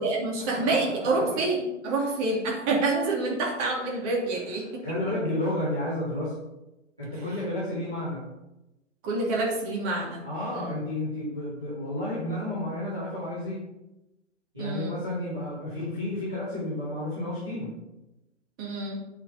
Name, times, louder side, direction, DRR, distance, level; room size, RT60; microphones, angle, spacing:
voice 1, 0.0-4.8 9.0-10.2 10.5-10.7 14.6-14.9 18.6-19.0, right 2 dB, 25° right, -2 dB, 2.9 m, -27 dB
voice 2, 1.0-1.4 4.8-6.3 7.0-8.2 10.2-13.6 14.5-17.7, left 1 dB, 5° right, -14 dB, 0.3 m, -31 dB
8.6 x 6.0 x 7.2 m, 0.96 s
figure-of-eight pair, 125°, 38 cm